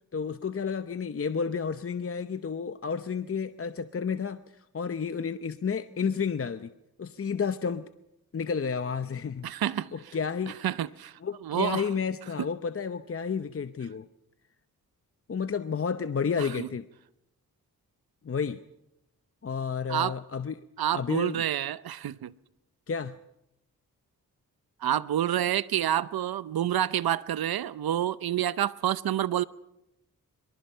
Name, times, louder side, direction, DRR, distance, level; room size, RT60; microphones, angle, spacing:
voice 1, 0.1-6.7 7.0-7.9 8.3-9.5 9.9-10.6 11.2-14.1 15.3-16.9 18.2-18.6 19.4-20.5 20.9-21.4 22.9-23.2, left 6 dB, 40° left, 0.8 m, -31 dB
voice 2, 9.4-9.9 10.6-11.1 11.4-11.9 16.4-16.7 19.9-20.2 20.8-22.3 24.8-29.4, right 11 dB, 85° right, 0.7 m, -28 dB
25.5 x 23.0 x 5.6 m
cardioid pair, 65°, 36 cm